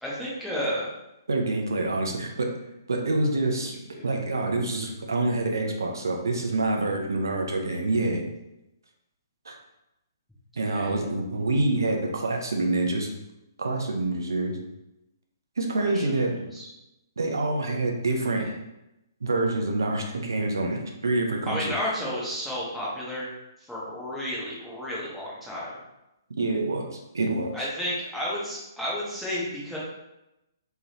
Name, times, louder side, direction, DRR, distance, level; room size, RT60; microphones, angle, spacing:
voice 1, 0.0-0.9 10.7-10.9 15.8-16.0 16.5-16.7 18.4-18.5 21.5-23.3 23.7-25.8 27.5-29.8, equal, ahead, -8 dB, 1.2 m, -32 dB
voice 2, 1.3-2.5 2.9-8.3 9.5-9.6 10.6-13.1 13.6-14.6 15.6-16.3 17.2-18.5 19.2-21.7 26.4-27.7, right 2 dB, 70° right, 2 dB, 0.7 m, -26 dB
3.7 x 3.4 x 2.8 m, 0.90 s
figure-of-eight pair, 130°, 2 cm